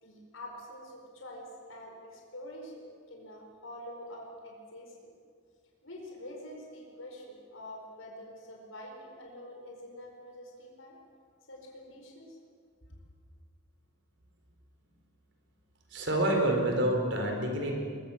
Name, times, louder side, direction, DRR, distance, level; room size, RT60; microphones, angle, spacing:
voice 1, 0.0-5.1 5.8-11.0 11.5-12.4, left 1 dB, 85° left, 0 dB, 4.7 m, -46 dB
voice 2, 15.9-17.8, right 1 dB, 60° right, 2 dB, 4.4 m, -27 dB
23.0 x 21.5 x 7.3 m, 2.1 s
head